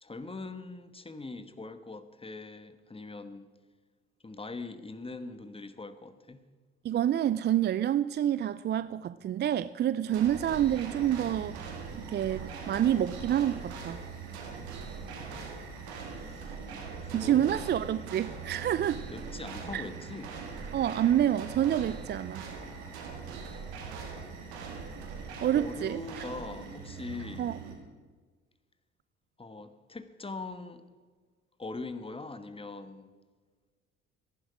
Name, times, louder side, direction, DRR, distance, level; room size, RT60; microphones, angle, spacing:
voice 1, 0.0-3.5 4.2-6.4 16.2-16.6 17.0-17.6 19.1-20.3 25.5-27.6 29.4-30.8 31.6-33.1, left 3 dB, 15° left, 11 dB, 1.3 m, -42 dB
voice 2, 6.8-11.6 12.0-14.0 17.1-19.0 19.7-19.8 20.7-22.5 25.4-26.2 27.4-27.6, right 11 dB, 35° right, 15 dB, 0.4 m, -28 dB
sound 1, 10.1-27.8, right 5 dB, 85° right, 2.0 m, -41 dB
14.5 x 11.0 x 5.0 m, 1.4 s
hypercardioid pair, 55°, 32 cm